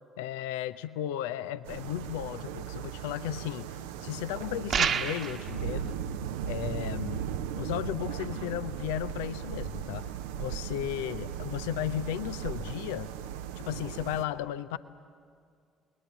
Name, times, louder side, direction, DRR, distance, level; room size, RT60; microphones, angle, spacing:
voice 1, 0.2-5.9 6.4-7.3 7.6-13.1 13.6-14.8, left 12 dB, 70° left, 15 dB, 0.5 m, -35 dB
sound 1, 1.6-14.2, right 9 dB, 70° right, 0.7 m, -37 dB
sound 2, 4.7-5.4, right 7 dB, 50° right, 1.3 m, -27 dB
29.5 x 21.0 x 7.0 m, 2.3 s
figure-of-eight pair, 50°, 0 cm